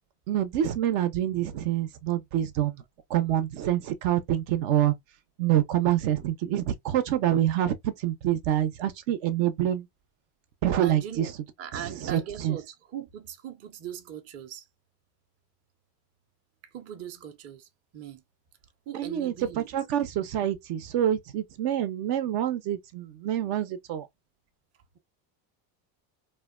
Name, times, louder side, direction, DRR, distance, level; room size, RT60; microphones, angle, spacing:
voice 1, 0.3-2.8 3.1-4.9 5.4-9.9 10.6-11.3 11.7-12.6 18.9-24.1, right 11 dB, 65° right, 0.7 m, -26 dB
voice 2, 10.8-11.3 11.6-14.7 16.6-18.2 18.9-19.7, right 9 dB, 30° right, 0.6 m, -40 dB
2.7 x 2.2 x 2.4 m
supercardioid pair, 115°, 50 cm